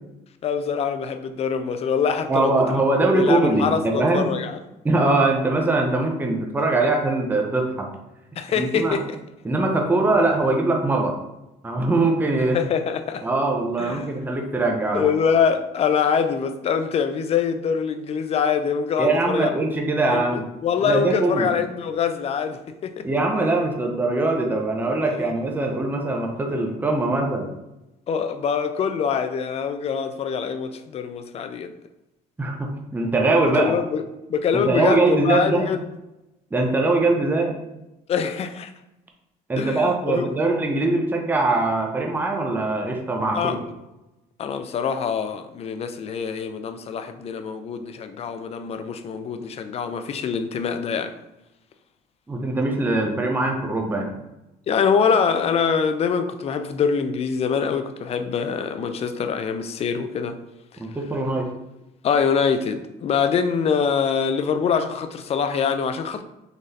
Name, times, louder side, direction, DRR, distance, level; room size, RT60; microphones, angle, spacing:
voice 1, 0.4-2.5 3.1-4.6 8.4-9.2 12.5-13.2 13.8-14.1 14.9-19.5 20.1-23.0 28.1-31.7 33.6-34.0 34.3-35.8 38.1-38.7 39.6-40.3 43.3-43.6 44.4-51.1 54.7-60.4 62.0-66.2, left 6 dB, 40° left, 9 dB, 0.4 m, -24 dB
voice 2, 2.3-4.3 4.8-7.9 8.6-9.0 9.4-11.1 11.6-12.6 13.2-15.1 19.0-20.5 20.8-21.5 23.0-27.5 32.4-33.8 34.5-35.7 36.5-37.6 39.5-43.5 52.3-54.1 60.8-61.5, right 2 dB, 10° right, 1 dB, 0.6 m, -22 dB
3.9 x 3.1 x 2.6 m, 0.94 s
cardioid pair, 110°, 17 cm